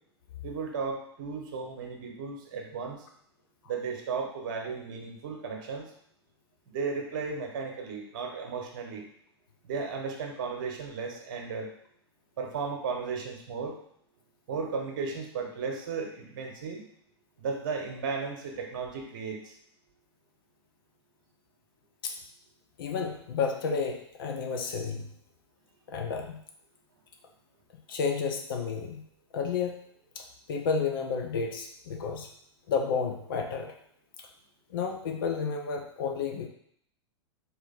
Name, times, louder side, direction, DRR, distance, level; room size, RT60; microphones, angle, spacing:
voice 1, 0.4-3.0 3.7-5.9 6.7-9.1 9.6-11.7 12.4-13.7 14.5-16.9 17.4-19.5, right 5 dB, 50° right, 2 dB, 1.0 m, -35 dB
voice 2, 22.8-25.1 25.9-26.4 27.9-29.0 29.3-29.8 30.2-32.3 32.7-33.7 34.2-34.3 34.7-36.5, left 5 dB, 50° left, 3 dB, 0.7 m, -31 dB
4.0 x 2.7 x 4.1 m, 0.68 s
figure-of-eight pair, 95°, 14 cm